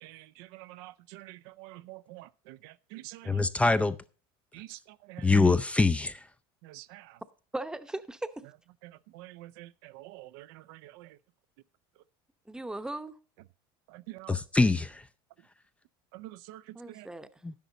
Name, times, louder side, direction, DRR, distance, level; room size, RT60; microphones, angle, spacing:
voice 1, 0.0-3.4 4.5-4.8 5.1-5.3 6.6-7.0 9.1-11.1 13.9-14.4 16.1-16.6 16.9-17.1, right 18 dB, 75° right, 0.5 m, -47 dB
voice 2, 3.3-4.0 5.2-6.2 14.3-15.0 17.4-17.5, left 3 dB, 10° left, 0.5 m, -24 dB
voice 3, 7.5-8.3 12.5-13.2 16.7-17.3, right 2 dB, 5° right, 0.9 m, -37 dB
11.5 x 10.5 x 3.9 m
supercardioid pair, 115°, 12 cm